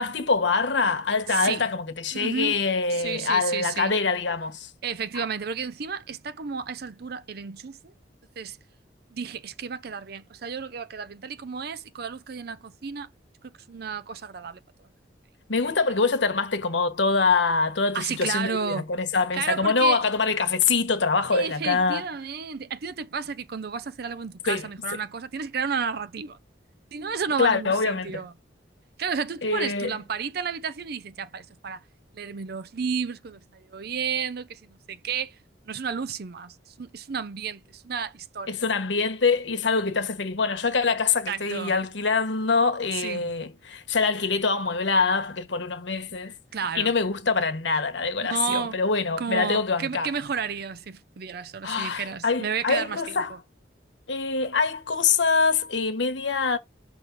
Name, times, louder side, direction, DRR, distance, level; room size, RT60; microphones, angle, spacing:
voice 1, 0.0-4.7 5.1-5.2 15.5-22.0 24.5-24.7 27.4-28.3 29.4-30.0 38.5-46.3 46.7-50.1 51.6-53.3 54.1-56.6, left 4 dB, 75° left, 1.2 m, -24 dB
voice 2, 1.3-1.6 2.1-2.6 2.9-4.0 4.8-7.9 8.4-8.6 9.1-13.1 13.4-14.6 17.9-18.8 19.3-20.0 21.3-26.4 26.9-28.3 29.0-31.8 32.1-35.4 35.6-38.5 41.3-41.7 42.9-43.3 46.5-46.9 48.2-48.8 49.2-53.4, right 6 dB, 55° right, 0.5 m, -32 dB
6.0 x 3.3 x 5.2 m
head